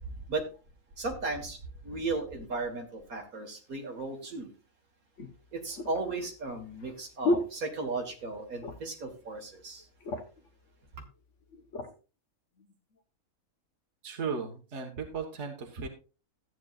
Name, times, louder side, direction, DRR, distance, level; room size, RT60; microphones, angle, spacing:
voice 1, 0.0-0.4 1.0-1.6 1.8-4.5 5.5-9.9 11.0-11.1, right 3 dB, 70° right, 3 dB, 2.2 m, -35 dB
sound 1, 4.2-4.3 5.2-8.3 8.6-9.0 9.4-9.5 9.8-10.5 11.2-11.9 12.6-12.8, left 1 dB, 55° left, 1.5 m, -34 dB
voice 2, 14.0-15.9, right 5 dB, 50° right, 2 dB, 1.7 m, -36 dB
14.0 x 9.2 x 2.4 m, 0.34 s
omnidirectional pair, 1.6 m